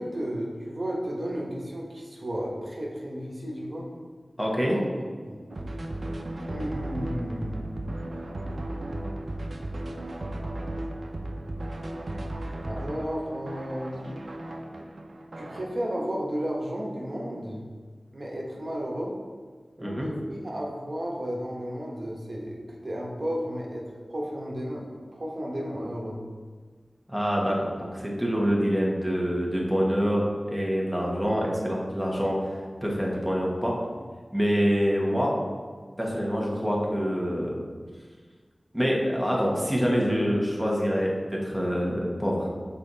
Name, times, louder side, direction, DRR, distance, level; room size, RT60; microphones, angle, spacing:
voice 1, 0.0-3.9 4.6-5.5 6.5-7.7 12.6-14.1 15.3-17.6 18.1-19.1 19.8-26.2, equal, 55° right, -3 dB, 1.1 m, -33 dB
voice 2, 4.4-4.8 19.8-20.1 27.1-32.5 32.8-33.7 34.3-35.3 36.0-37.5 38.7-41.1 41.4-42.5, equal, ahead, -3 dB, 1.4 m, -26 dB
sound 1, 5.5-15.6, right 1 dB, 70° right, 0.6 m, -35 dB
5.6 x 4.3 x 4.0 m, 1.5 s
wide cardioid pair, 50°, 0 cm